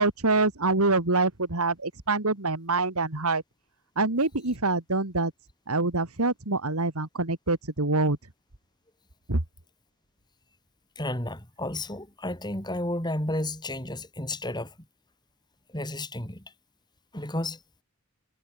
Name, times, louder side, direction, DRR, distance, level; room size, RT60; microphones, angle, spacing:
voice 1, 0.0-3.4 4.0-5.3 5.7-8.2 9.3-9.4, right 3 dB, 80° right, 2.5 m, -25 dB
voice 2, 11.0-14.7 15.7-16.4 17.1-17.6, left 1 dB, 20° left, 5.5 m, -32 dB
head